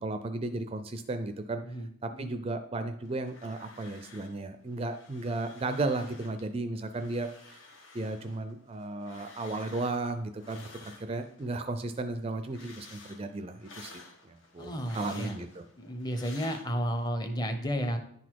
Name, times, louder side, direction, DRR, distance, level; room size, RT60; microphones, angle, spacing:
voice 1, 0.0-1.6 2.0-7.6 7.9-14.7 14.9-15.6, right 2 dB, 30° right, 8 dB, 0.4 m, -35 dB
voice 2, 1.6-2.3 14.6-15.3 15.8-18.0, equal, 20° left, 6 dB, 0.8 m, -32 dB
sound 1, 3.0-4.4 4.7-6.5 6.8-11.5 11.9-17.1, left 3 dB, 70° left, 1.3 m, -53 dB
10.5 x 4.1 x 4.6 m, 0.69 s
head